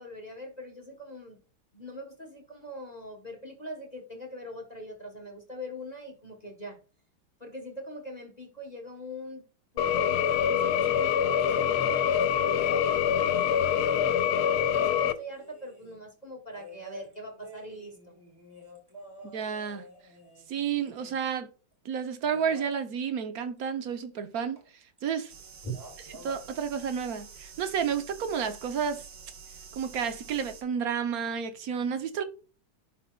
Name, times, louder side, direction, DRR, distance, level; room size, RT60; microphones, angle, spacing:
voice 1, 0.0-1.4 1.7-6.8 7.4-9.4 9.7-18.1 25.6-25.7, equal, 25° left, 1.0 m, -42 dB
sound 1, 9.8-15.1, left 8 dB, 85° left, 1.5 m, -25 dB
sound 2, 11.2-12.1 12.4-16.0 16.5-21.3 22.2-22.7 24.5-24.7 25.0-25.4 25.7-26.4 27.8-27.9, equal, 10° right, 2.6 m, -48 dB
voice 2, 19.2-19.9 20.5-21.5 21.8-25.3 26.2-29.1 29.7-32.2, right 7 dB, 60° right, 1.0 m, -31 dB
sound 3, 25.3-30.6, right 6 dB, 45° right, 1.4 m, -48 dB
12.0 x 4.1 x 2.3 m
omnidirectional pair, 2.3 m